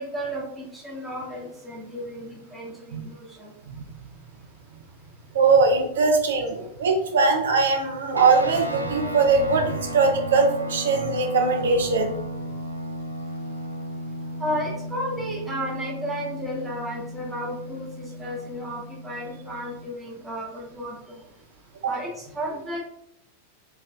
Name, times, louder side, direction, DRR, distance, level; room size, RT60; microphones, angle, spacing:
voice 1, 0.0-5.4 6.6-6.7 13.5-21.3 21.8-22.8, equal, 10° right, -4 dB, 1.0 m, -34 dB
voice 2, 5.3-12.1, right 4 dB, 65° right, 3 dB, 0.5 m, -21 dB
sound 1, 8.1-19.9, equal, 85° left, 0.4 m, -35 dB
3.9 x 3.1 x 2.5 m, 0.76 s
figure-of-eight pair, 90°, 0 cm